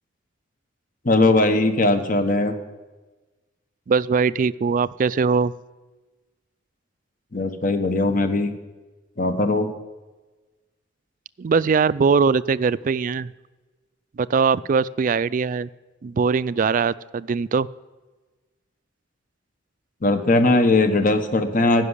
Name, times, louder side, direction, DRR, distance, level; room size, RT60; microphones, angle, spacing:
voice 1, 1.0-2.5 7.3-8.5 9.2-9.7 20.0-21.9, left 2 dB, 45° left, 7 dB, 1.1 m, -19 dB
voice 2, 3.9-5.5 11.4-13.3 14.1-15.7 16.0-17.7, right 5 dB, 45° right, 18 dB, 0.3 m, -21 dB
15.0 x 6.0 x 9.8 m, 1.2 s
head